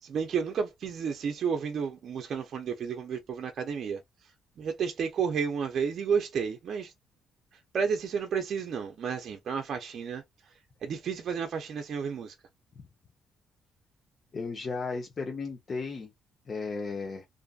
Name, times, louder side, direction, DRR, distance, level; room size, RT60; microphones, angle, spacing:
voice 1, 0.0-4.3 4.6-6.9 7.7-10.5 10.8-12.3, right 6 dB, 60° right, 0.5 m, -32 dB
voice 2, 14.3-16.1 16.5-17.3, left 4 dB, 45° left, 0.6 m, -35 dB
2.5 x 2.5 x 2.3 m
cardioid pair, 90°, 0 cm